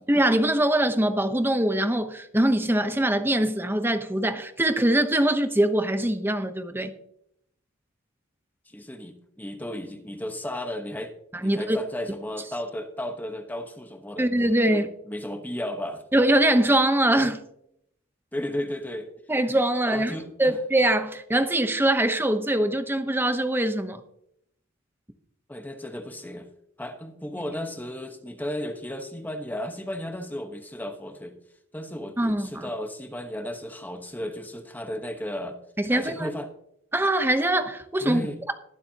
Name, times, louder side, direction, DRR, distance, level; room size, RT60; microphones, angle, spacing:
voice 1, 0.1-6.9 11.3-11.8 14.2-14.9 16.1-17.4 19.3-20.1 20.4-24.0 32.2-32.7 35.8-36.3 36.9-38.2, right 1 dB, 10° right, 0.9 m, -23 dB
voice 2, 8.7-14.3 14.7-16.0 18.3-19.1 19.8-20.6 25.5-26.5 26.8-31.4 31.7-35.6 35.9-36.5 38.0-38.4, left 1 dB, 10° left, 1.1 m, -34 dB
21.5 x 7.6 x 2.9 m
head